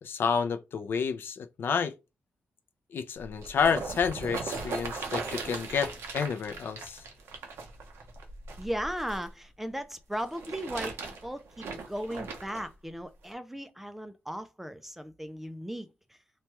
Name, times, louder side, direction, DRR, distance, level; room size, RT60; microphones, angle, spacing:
voice 1, 0.0-1.9 2.9-7.0, left 6 dB, 60° left, 0.4 m, -30 dB
sound 1, 3.2-9.3 10.1-12.7 13.3-13.4, right 4 dB, 85° right, 0.8 m, -38 dB
voice 2, 8.6-11.0 11.2-16.2, equal, 5° right, 0.3 m, -37 dB
3.0 x 2.2 x 2.9 m
cardioid pair, 120°, 4 cm